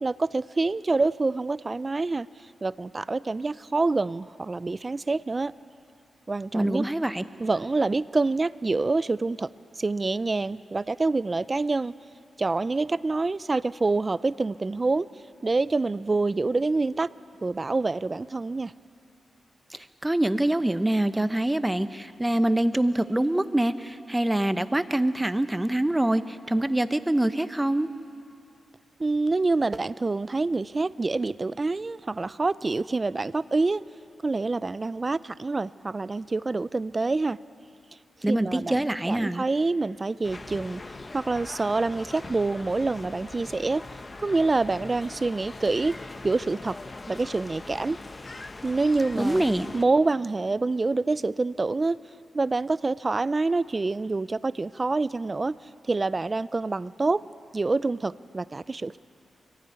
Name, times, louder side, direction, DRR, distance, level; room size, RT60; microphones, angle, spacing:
voice 1, 0.0-2.3 2.6-5.5 6.3-6.9 7.4-9.5 9.8-11.9 12.4-15.1 15.4-17.1 17.4-18.7 29.0-33.8 34.2-37.4 38.3-38.8 39.1-40.8 41.1-43.8 44.2-46.8 47.1-48.0 48.6-49.4 49.7-52.0 52.3-55.5 55.9-57.2 57.5-59.0, right 3 dB, 35° right, 17 dB, 0.4 m, -26 dB
voice 2, 6.5-7.2 19.7-27.9 38.2-39.4 49.1-49.7, right 1 dB, 15° right, 11 dB, 0.8 m, -25 dB
sound 1, 40.2-49.8, left 2 dB, 35° left, 0.9 m, -41 dB
23.0 x 15.0 x 9.4 m, 2.5 s
cardioid pair, 65°, 0 cm